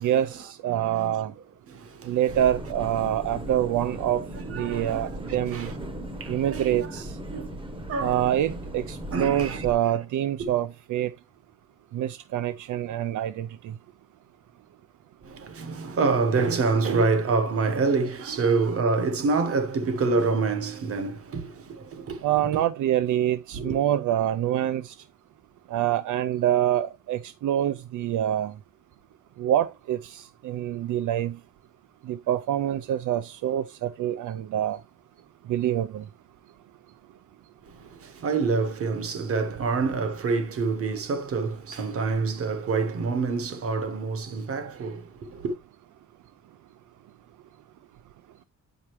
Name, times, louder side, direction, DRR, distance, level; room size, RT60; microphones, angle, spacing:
voice 1, 0.0-1.3 2.1-4.3 4.5-5.7 6.3-7.1 8.0-11.1 11.9-13.7 22.2-24.9 25.7-28.5 29.4-31.3 32.1-34.8 35.5-36.0, right 11 dB, 80° right, 0.5 m, -26 dB
voice 2, 0.7-1.2 1.7-2.2 4.3-5.7 6.2-7.0 7.3-7.6 7.9-8.2 8.4-8.6 9.1-9.6 15.2-22.6 23.5-23.8 37.6-45.6, right 4 dB, 50° right, 1.1 m, -27 dB
sound 1, 2.3-9.7, right 1 dB, 15° right, 0.9 m, -37 dB
8.4 x 5.1 x 3.0 m
wide cardioid pair, 170°, 30 cm